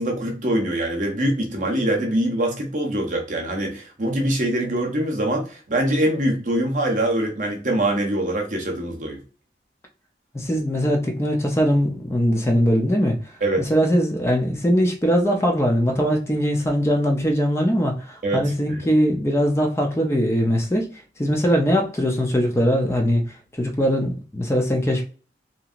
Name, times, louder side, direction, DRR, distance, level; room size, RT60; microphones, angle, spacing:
voice 1, 0.0-9.2 13.4-13.7 18.2-18.8, right 1 dB, 45° right, 2 dB, 0.7 m, -23 dB
voice 2, 10.3-13.2 13.7-20.9 21.2-23.2 23.6-25.0, equal, 15° left, 2 dB, 0.4 m, -21 dB
2.9 x 2.7 x 2.4 m, 0.37 s
head